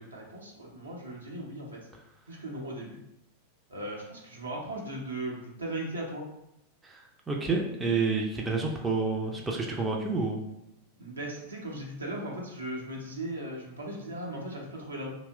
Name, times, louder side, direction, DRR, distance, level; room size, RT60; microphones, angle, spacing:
voice 1, 0.0-1.9 2.3-3.0 3.7-6.3 11.0-15.1, right 1 dB, 75° right, -2 dB, 0.8 m, -38 dB
voice 2, 6.8-10.4, right 4 dB, 15° right, 0 dB, 0.4 m, -29 dB
2.8 x 2.0 x 3.4 m, 0.88 s
figure-of-eight pair, 90°, 0 cm